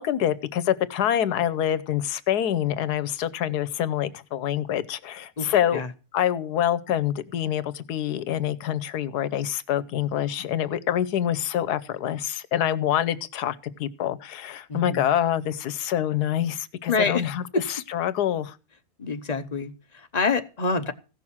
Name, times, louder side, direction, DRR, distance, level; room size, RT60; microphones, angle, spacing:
voice 1, 0.0-5.8 6.1-18.6, left 10 dB, 90° left, 1.4 m, -26 dB
voice 2, 5.4-5.9 14.7-15.1 16.9-17.2 17.5-17.6 19.0-20.9, left 4 dB, 35° left, 0.8 m, -27 dB
16.0 x 6.3 x 7.2 m
omnidirectional pair, 1.6 m